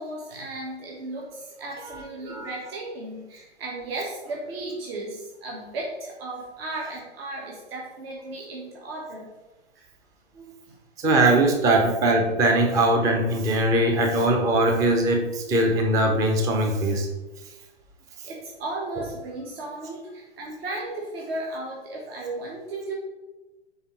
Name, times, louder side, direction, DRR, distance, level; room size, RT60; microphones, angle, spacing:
voice 1, 0.0-9.3 9.7-9.9 10.3-10.8 18.2-22.9, right 2 dB, 60° right, -2 dB, 1.5 m, -35 dB
voice 2, 11.0-17.1, right 1 dB, 10° right, 2 dB, 0.5 m, -21 dB
5.6 x 3.8 x 4.4 m, 1.1 s
hypercardioid pair, 135°, 34 cm